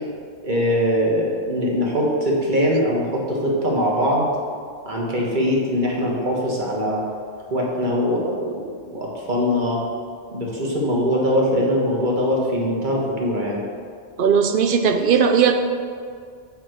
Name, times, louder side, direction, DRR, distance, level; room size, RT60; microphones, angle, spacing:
voice 1, 0.4-4.3 4.8-7.0 7.5-9.8 10.3-13.6, equal, 40° right, -3 dB, 1.5 m, -22 dB
voice 2, 14.2-15.5, right 6 dB, 60° right, 6 dB, 0.6 m, -17 dB
7.7 x 3.8 x 6.4 m, 2.1 s
omnidirectional pair, 1.3 m